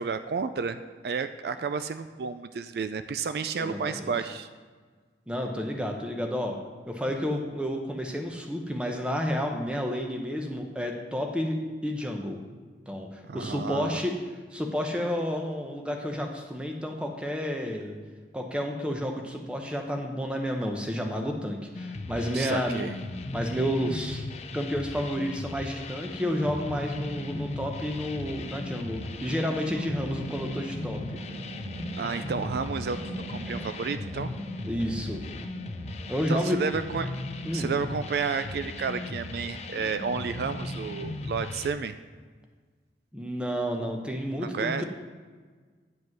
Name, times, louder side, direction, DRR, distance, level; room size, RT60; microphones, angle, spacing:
voice 1, 0.0-4.5 13.2-14.0 22.3-23.0 31.9-33.0 33.3-34.3 36.3-37.1 37.5-41.9 44.5-44.8, right 5 dB, 60° right, 10 dB, 0.3 m, -31 dB
voice 2, 3.6-4.1 5.3-6.6 6.9-11.6 11.8-12.4 12.9-14.1 14.5-18.0 18.3-22.8 23.3-24.2 24.5-31.0 34.6-35.2 36.1-36.6 37.4-37.7 43.1-44.8, equal, 5° right, 2 dB, 0.8 m, -30 dB
sound 1, 21.7-41.7, left 2 dB, 35° left, 0.4 m, -38 dB
sound 2, 26.3-41.2, right 1 dB, 35° right, 0.8 m, -43 dB
9.5 x 5.2 x 5.9 m, 1.5 s
head